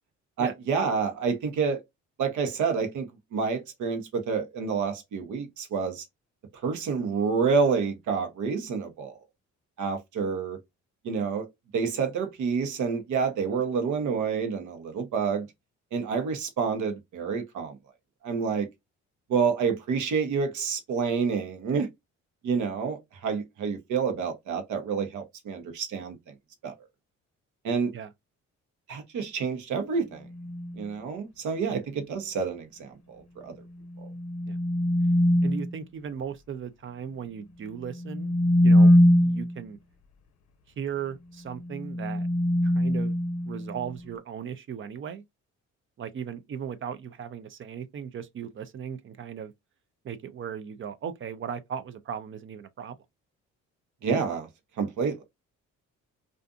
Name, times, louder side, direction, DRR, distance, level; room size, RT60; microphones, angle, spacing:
voice 1, 0.4-1.8 2.2-6.0 6.6-9.1 9.8-10.6 11.0-11.5 11.7-15.4 15.9-17.8 18.2-18.7 19.3-21.9 22.4-26.1 26.6-26.7 27.6-27.9 28.9-30.2 30.8-33.5 54.0-54.5 54.8-55.2, right 5 dB, 75° right, 0.9 m, -28 dB
sound 1, 30.3-30.8 33.9-35.7 37.9-39.6 41.6-43.9, left 1 dB, 60° left, 0.6 m, -22 dB
voice 2, 35.4-38.4 38.6-39.8 40.8-42.3 42.6-43.2 43.5-45.2 46.0-49.5 50.0-53.0, right 8 dB, 45° right, 0.4 m, -37 dB
2.5 x 2.5 x 2.3 m
cardioid pair, 90°, 30 cm